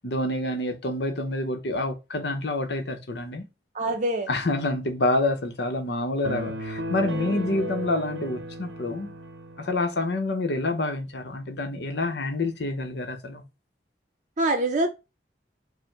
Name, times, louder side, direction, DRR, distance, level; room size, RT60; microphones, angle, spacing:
voice 1, 0.0-3.5 4.3-9.1 9.6-13.4, left 2 dB, 65° left, 0.8 m, -27 dB
voice 2, 3.7-4.3 7.0-7.6 14.4-14.9, right 2 dB, 40° right, 0.6 m, -26 dB
sound 1, 6.2-9.8, equal, 85° right, 0.7 m, -35 dB
5.0 x 2.1 x 4.5 m
head